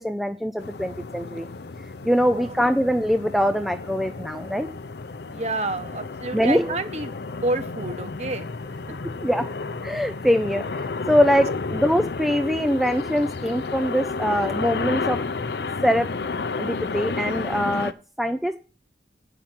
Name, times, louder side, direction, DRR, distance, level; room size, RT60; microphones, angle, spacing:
voice 1, 0.0-1.5 2.0-4.7 6.3-6.7 9.2-9.5 9.8-15.2 15.8-16.1 16.6-18.6, equal, ahead, 7 dB, 0.4 m, -23 dB
sound 1, 0.6-17.9, left 4 dB, 65° left, 0.6 m, -32 dB
voice 2, 2.2-2.6 5.3-7.1 7.4-8.8, right 2 dB, 40° right, 9 dB, 1.1 m, -29 dB
8.7 x 5.8 x 7.7 m, 0.36 s
head